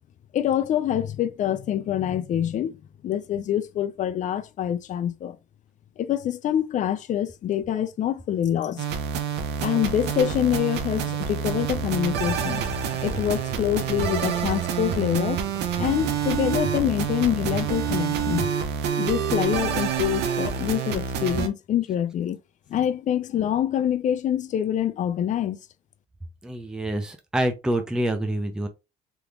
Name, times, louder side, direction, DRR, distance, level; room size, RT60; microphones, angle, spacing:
voice 1, 0.3-2.8 3.0-5.4 6.0-8.8 9.6-12.6 13.0-15.4 15.8-18.5 19.0-22.4 22.7-25.6, left 10 dB, 45° left, 0.4 m, -25 dB
sound 1, 8.8-21.5, right 7 dB, 80° right, 0.7 m, -27 dB
sound 2, 11.5-18.5, right 4 dB, 40° right, 0.9 m, -37 dB
voice 2, 26.4-28.7, right 1 dB, 5° right, 0.6 m, -26 dB
3.5 x 3.0 x 2.4 m
cardioid pair, 110°, 17 cm